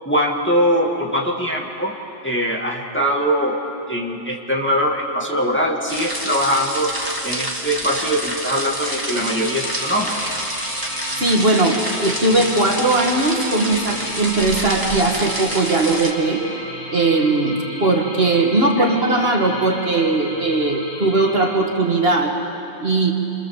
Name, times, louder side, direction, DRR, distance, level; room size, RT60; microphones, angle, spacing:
voice 1, 0.1-1.9 2.2-3.6 3.9-6.9 7.2-10.2 18.8-18.9, equal, 10° left, -1 dB, 2.4 m, -21 dB
sound 1, 5.9-16.1, right 1 dB, 20° right, 2.1 m, -28 dB
sound 2, 9.1-21.6, left 1 dB, 50° left, 6.1 m, -33 dB
voice 2, 11.2-16.4 16.9-22.4 22.8-23.1, right 2 dB, 55° right, 1 dB, 2.2 m, -19 dB
27.5 x 25.5 x 7.4 m, 2.9 s
omnidirectional pair, 1.2 m